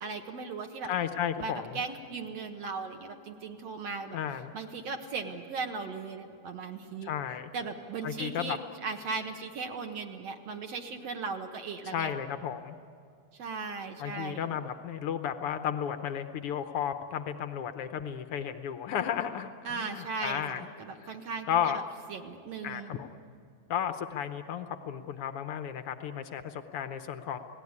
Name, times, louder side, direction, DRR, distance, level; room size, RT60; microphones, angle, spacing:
voice 1, 0.0-0.9 1.4-4.2 4.5-7.1 7.5-12.1 13.4-14.6 19.6-21.8 22.1-22.9, right 4 dB, 60° right, 4 dB, 2.3 m, -37 dB
voice 2, 0.8-1.8 4.1-4.5 7.0-7.5 8.0-8.6 11.8-12.8 14.0-20.7 21.0-21.1 21.5-21.8 22.6-23.1 23.7-27.4, left 9 dB, 75° left, 8 dB, 1.3 m, -33 dB
30.0 x 18.0 x 9.7 m, 2.3 s
omnidirectional pair, 3.6 m